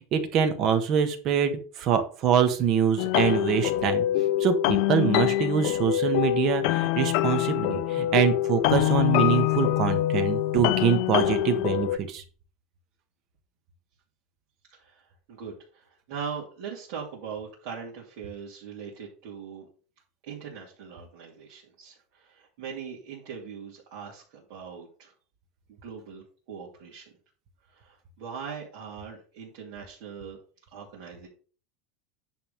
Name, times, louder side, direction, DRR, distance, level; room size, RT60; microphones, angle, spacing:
voice 1, 0.0-4.1 4.4-12.2, right 8 dB, 35° right, 7 dB, 1.4 m, -25 dB
sound 1, 3.0-12.0, left 14 dB, 50° left, 0.4 m, -25 dB
voice 2, 14.7-19.7 20.2-25.1 25.7-27.1 27.7-30.4 30.7-31.3, right 6 dB, 50° right, -4 dB, 2.8 m, -41 dB
10.0 x 3.7 x 6.7 m, 0.39 s
supercardioid pair, 170°, 0 cm